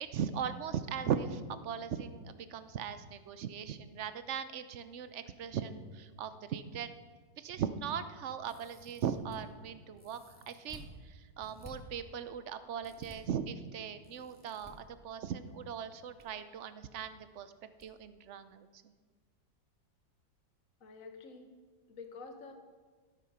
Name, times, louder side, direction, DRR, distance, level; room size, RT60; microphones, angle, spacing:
voice 1, 0.0-6.9 7.4-10.2 10.5-17.5 17.8-18.7, right 8 dB, 55° right, 11 dB, 0.8 m, -39 dB
sound 1, 8.4-9.4 10.0-10.9 11.4-11.7 12.8-13.2 14.0-14.7 15.8-16.3 16.5-16.6 17.8-17.9 18.3-18.4, equal, 5° left, 2.2 m, -55 dB
voice 2, 20.8-21.5 21.9-22.5, left 4 dB, 50° left, 5 dB, 1.7 m, -48 dB
12.5 x 12.5 x 5.7 m, 1.5 s
omnidirectional pair, 1.9 m